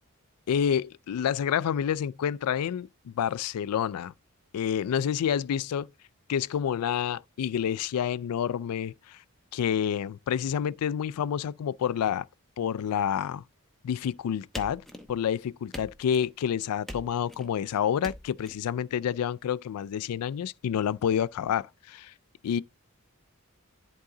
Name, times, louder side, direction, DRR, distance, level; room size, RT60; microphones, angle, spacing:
voice 1, 0.5-4.1 4.5-5.9 6.3-9.2 9.5-12.3 12.6-13.4 13.8-14.8 15.1-22.1 22.4-22.6, left 8 dB, 90° left, 0.3 m, -28 dB
sound 1, 14.5-15.3 15.7-16.3 16.9-17.5 18.0-18.5, left 1 dB, ahead, 0.8 m, -42 dB
11.0 x 3.7 x 3.8 m
head